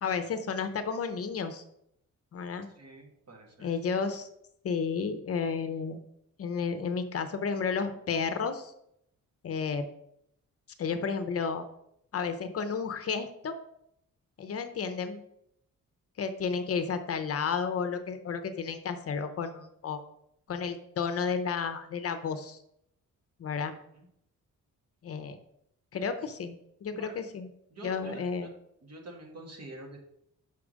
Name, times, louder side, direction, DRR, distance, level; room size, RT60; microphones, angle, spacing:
voice 1, 0.0-1.6 2.3-2.7 3.6-4.3 4.6-6.0 6.4-8.7 9.4-9.9 10.8-11.7 12.1-13.5 14.4-15.2 16.2-20.0 20.5-22.6 23.4-23.7 25.0-25.4 25.9-27.5 27.8-28.5, left 5 dB, 45° left, 9 dB, 0.6 m, -32 dB
voice 2, 2.7-3.7 23.9-24.1 26.9-27.2 27.7-28.5 28.8-30.0, right 2 dB, 50° right, 0 dB, 1.7 m, -46 dB
5.8 x 4.8 x 6.2 m, 0.76 s
wide cardioid pair, 170°, 32 cm